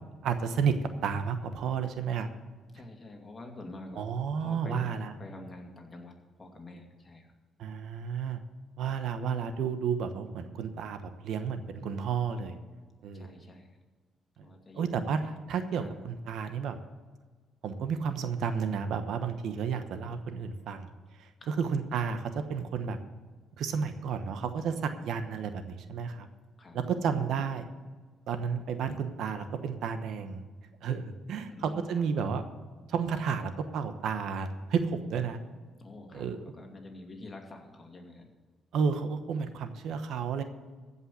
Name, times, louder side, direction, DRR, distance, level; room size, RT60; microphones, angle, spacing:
voice 1, 0.2-0.7 1.0-2.3 4.0-5.1 7.6-8.4 8.8-12.6 13.0-13.3 14.7-16.8 17.6-20.9 21.2-23.0 23.6-26.3 26.7-27.6 28.3-30.4 30.8-32.4 32.9-35.4 36.1-36.4 38.7-40.4, right 6 dB, 75° right, 9 dB, 1.0 m, -32 dB
voice 2, 2.7-4.9 5.2-7.3 13.1-13.7 14.4-14.9 15.8-15.9 21.4-21.6 26.6-26.9 31.5-32.1 35.8-38.3, left 2 dB, 30° left, 2 dB, 2.4 m, -47 dB
15.0 x 5.5 x 8.4 m, 1.4 s
cardioid pair, 90°, 0 cm